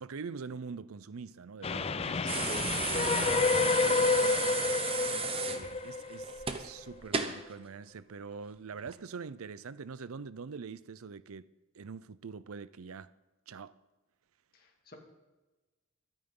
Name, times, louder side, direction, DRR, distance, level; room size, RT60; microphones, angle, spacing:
voice 1, 0.0-2.2 3.5-4.2 5.3-11.5 11.7-13.1 13.5-13.8, right 5 dB, 90° right, 0.5 m, -44 dB
Train, 1.6-6.9, left 4 dB, 30° left, 0.4 m, -29 dB
voice 2, 2.2-2.7 14.5-15.0, left 2 dB, 45° left, 2.2 m, -45 dB
sound 1, 2.3-7.4 8.8-8.9, right 5 dB, 25° right, 0.8 m, -34 dB
23.0 x 9.1 x 3.9 m
head